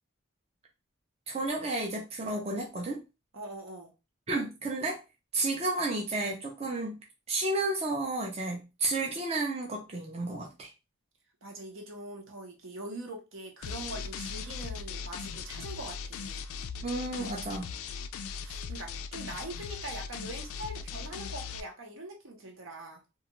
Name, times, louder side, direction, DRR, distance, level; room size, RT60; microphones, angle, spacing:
voice 1, 1.3-3.0 4.3-5.0 5.3-7.0 7.3-10.7 16.8-17.7, right 2 dB, 30° right, 0 dB, 0.4 m, -32 dB
voice 2, 3.3-3.9 11.4-16.4 18.4-23.0, right 1 dB, 75° right, 1 dB, 0.8 m, -43 dB
sound 1, 13.6-21.6, left 6 dB, 85° left, 0.3 m, -39 dB
2.4 x 2.3 x 2.9 m, 0.27 s
head